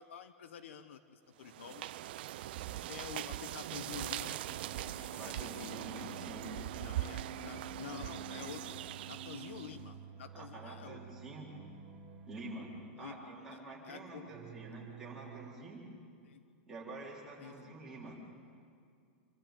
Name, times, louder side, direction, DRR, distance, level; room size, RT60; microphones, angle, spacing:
voice 1, 0.0-1.9 2.9-5.8 6.8-11.0 13.0-14.3 16.3-16.4 17.4-17.7, left 8 dB, 70° left, 11 dB, 1.1 m, -49 dB
sound 1, 1.4-9.8, right 14 dB, 50° right, 0.5 m, -42 dB
sound 2, 3.8-15.5, right 5 dB, 25° right, 1.3 m, -50 dB
voice 2, 5.2-6.5 10.3-11.5 12.3-12.7 13.0-15.8 16.7-18.2, right 2 dB, 5° right, -6 dB, 3.6 m, -48 dB
26.5 x 13.5 x 8.9 m, 2.3 s
supercardioid pair, 175°, 7 cm